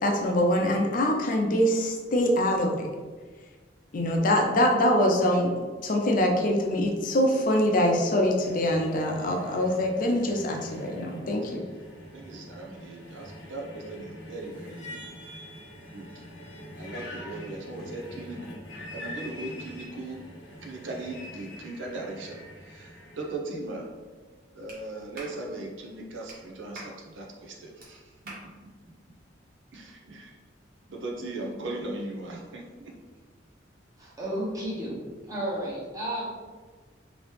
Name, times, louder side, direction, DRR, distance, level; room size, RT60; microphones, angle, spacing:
voice 1, 0.0-2.9 3.9-5.5 5.8-11.6, left 1 dB, 45° left, 1 dB, 0.5 m, -24 dB
sound 1, 8.4-23.3, left 1 dB, 80° left, 0.8 m, -44 dB
voice 2, 12.1-15.1 15.9-16.1 16.8-18.6 18.9-20.2 20.6-22.4 22.7-23.9 24.5-28.3 28.8-29.0 29.7-30.3 30.9-32.9, right 2 dB, 85° right, 1 dB, 0.6 m, -38 dB
Clapping, 24.7-24.8 25.2-25.4 26.3-26.4 26.8-27.0 27.8-27.9 28.3-28.5, right 2 dB, 50° right, 0.8 m, -43 dB
voice 3, 34.0-36.2, right 1 dB, 20° right, -6 dB, 0.9 m, -32 dB
3.0 x 2.8 x 3.2 m, 1.4 s
head